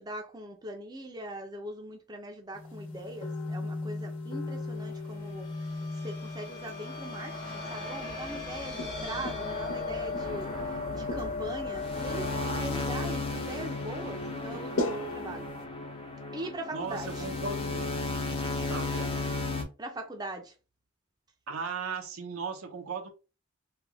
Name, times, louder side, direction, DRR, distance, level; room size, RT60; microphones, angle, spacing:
voice 1, 0.0-5.5 6.0-15.5 16.3-17.3 19.8-20.5, right 1 dB, 20° right, 0.5 m, -41 dB
sound 1, 2.5-15.6, left 2 dB, 75° left, 1.1 m, -39 dB
sound 2, 4.5-14.8, left 3 dB, 45° left, 1.3 m, -38 dB
sound 3, 10.2-19.6, left 3 dB, 25° left, 0.6 m, -35 dB
voice 2, 16.7-17.9 18.7-19.1 21.5-23.1, right 4 dB, 85° right, 0.7 m, -36 dB
3.3 x 2.3 x 3.4 m
head